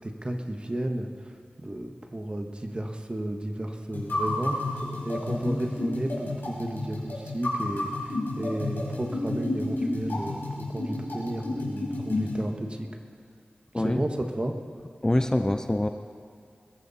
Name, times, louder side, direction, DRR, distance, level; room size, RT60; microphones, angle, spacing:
voice 1, 0.0-12.9 13.7-14.6, right 1 dB, 30° right, 4 dB, 1.4 m, -33 dB
sound 1, 3.9-12.4, left 2 dB, 85° left, 4.3 m, -31 dB
voice 2, 5.3-5.6 13.7-14.0 15.0-15.9, left 1 dB, 20° left, 8 dB, 0.6 m, -25 dB
21.0 x 14.5 x 4.2 m, 2.4 s
wide cardioid pair, 70°, 3 cm